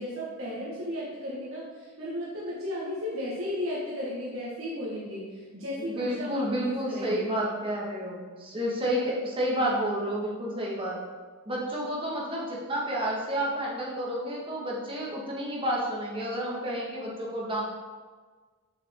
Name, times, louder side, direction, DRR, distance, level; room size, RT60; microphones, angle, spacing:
voice 1, 0.0-7.3, left 1 dB, 70° right, -7 dB, 1.7 m, -35 dB
voice 2, 6.0-11.0 11.4-17.6, equal, 25° right, -4 dB, 1.7 m, -30 dB
6.7 x 6.5 x 3.7 m, 1.4 s
head